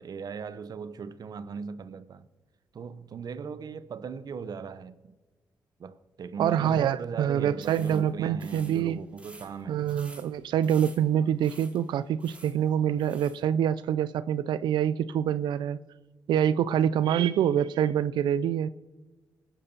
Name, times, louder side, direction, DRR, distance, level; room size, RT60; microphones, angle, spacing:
voice 1, 0.0-2.3 2.7-5.1 5.8-9.8, right 5 dB, 60° right, 0.7 m, -38 dB
voice 2, 6.4-9.0 9.7-15.8 16.3-18.7, right 9 dB, 75° right, 0.4 m, -26 dB
sound 1, 7.5-13.4, right 1 dB, 15° right, 2.5 m, -52 dB
21.5 x 11.0 x 2.8 m
supercardioid pair, 55°, 8 cm